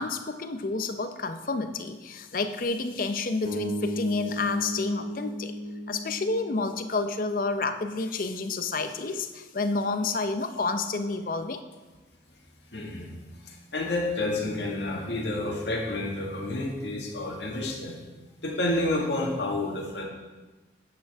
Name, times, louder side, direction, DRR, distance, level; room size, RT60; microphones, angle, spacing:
voice 1, 0.0-5.5 5.9-11.6, left 3 dB, 50° left, 8 dB, 0.6 m, -29 dB
sound 1, 3.4-7.6, left 1 dB, 75° right, 2.5 m, -35 dB
voice 2, 12.7-13.1 13.4-18.0 18.4-20.0, left 2 dB, 80° left, -1 dB, 1.8 m, -29 dB
9.7 x 8.2 x 3.5 m, 1.2 s
head